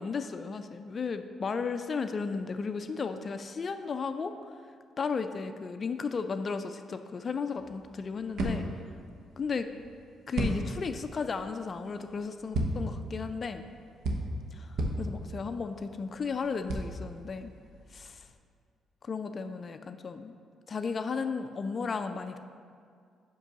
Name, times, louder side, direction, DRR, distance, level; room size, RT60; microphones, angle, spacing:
voice 1, 0.0-4.5 5.0-8.7 9.4-9.7 10.3-13.6 14.5-17.5 17.9-18.3 19.0-20.3 20.7-22.4, left 5 dB, 40° left, 9 dB, 0.3 m, -34 dB
sound 1, 7.6-18.3, right 1 dB, 70° right, 0.9 m, -36 dB
5.3 x 5.3 x 6.0 m, 2.2 s
cardioid pair, 90°, 0 cm